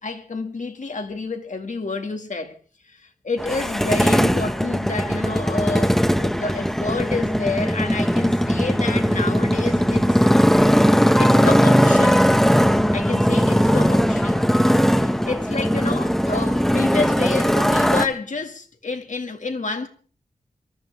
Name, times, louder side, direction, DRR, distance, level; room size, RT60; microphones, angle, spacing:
voice 1, 0.0-2.6 2.9-10.2 11.2-12.3 12.9-14.4 14.9-19.9, left 3 dB, 55° left, 2.1 m, -29 dB
Motorcycle, 3.4-18.1, equal, 5° left, 1.3 m, -19 dB
26.5 x 13.5 x 3.6 m
wide cardioid pair, 95°, 15 cm